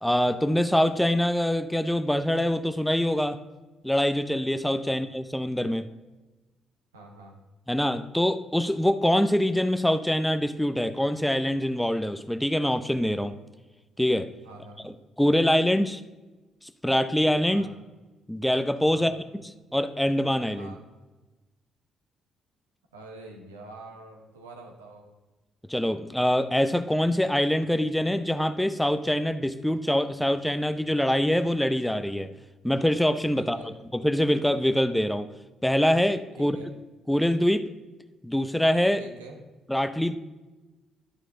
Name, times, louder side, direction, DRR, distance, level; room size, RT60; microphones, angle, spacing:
voice 1, 0.0-3.4 3.8-5.8 7.7-13.4 14.0-14.3 14.8-14.9 15.2-16.0 16.8-17.7 18.3-19.1 19.7-20.7 25.7-32.3 32.6-33.6 33.9-35.3 35.6-36.6 37.1-37.7 38.2-39.0 39.7-40.2, equal, 5° left, 10 dB, 0.6 m, -24 dB
voice 2, 6.9-7.4 14.4-14.9 17.5-17.7 18.9-19.2 20.6-20.8 22.9-25.1 33.3-33.7 36.4-36.7 39.0-39.4, right 2 dB, 85° right, 1 dB, 1.2 m, -45 dB
12.5 x 4.6 x 3.8 m, 1.1 s
figure-of-eight pair, 45°, 0 cm